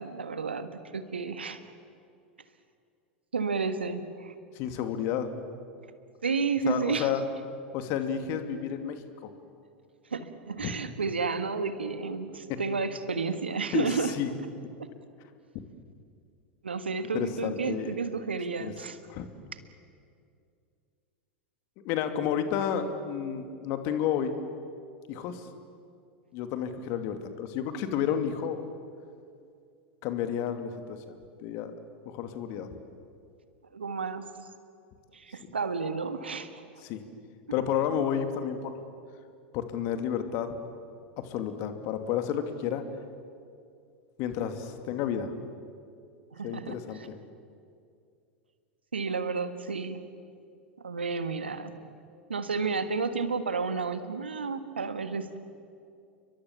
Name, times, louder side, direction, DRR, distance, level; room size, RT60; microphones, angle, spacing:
voice 1, 0.0-1.6 3.3-4.3 6.2-7.1 10.1-14.1 14.8-14.9 16.6-19.0 33.7-34.3 35.1-36.6 46.3-47.1 48.9-50.0 50.8-51.7 52.3-55.4, right 4 dB, 85° right, 10 dB, 1.6 m, -31 dB
voice 2, 4.5-5.3 6.6-7.2 7.7-9.0 10.6-10.7 12.5-12.6 13.7-14.3 17.1-18.0 18.6-18.7 19.1-19.3 21.8-24.3 25.1-25.5 26.3-28.6 30.0-31.1 31.4-31.7 32.1-32.7 36.8-37.0 37.5-38.8 39.5-40.5 41.2-42.8 44.2-45.3 46.4-47.1, left 9 dB, 50° left, 7 dB, 2.5 m, -31 dB
30.0 x 23.5 x 7.3 m, 2.4 s
figure-of-eight pair, 90°, 6 cm